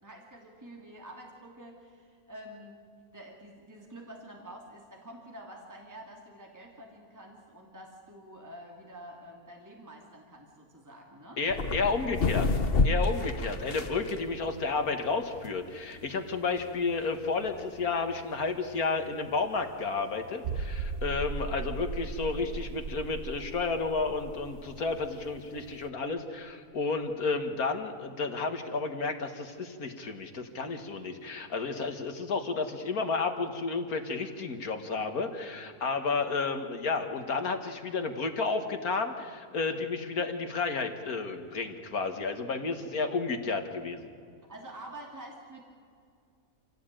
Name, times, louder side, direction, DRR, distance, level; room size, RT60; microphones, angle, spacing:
voice 1, 0.0-2.8 3.1-11.4 12.5-12.8 13.4-13.7 21.4-21.6 44.5-45.6, right 1 dB, 10° right, 0 dB, 2.8 m, -48 dB
voice 2, 11.4-12.5 12.8-44.1, left 4 dB, 75° left, 6 dB, 2.2 m, -32 dB
sound 1, 11.5-25.9, left 3 dB, 40° left, 1.3 m, -34 dB
sound 2, 20.4-25.9 26.2-26.3 26.8-26.9, right 4 dB, 55° right, 1.2 m, -37 dB
27.5 x 17.0 x 9.1 m, 2.4 s
omnidirectional pair, 1.6 m